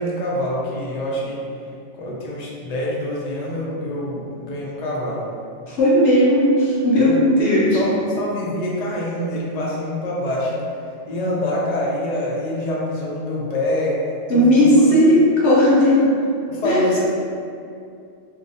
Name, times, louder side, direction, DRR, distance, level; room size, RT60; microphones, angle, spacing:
voice 1, 0.0-1.4 1.9-5.2 7.0-7.2 7.7-10.6 11.1-14.9 16.5-17.0, left 1 dB, 55° left, -5 dB, 0.4 m, -25 dB
voice 2, 5.7-7.8 14.3-16.1 16.6-16.8, equal, 80° left, -7 dB, 0.9 m, -15 dB
2.5 x 2.0 x 2.6 m, 2.4 s
omnidirectional pair, 1.2 m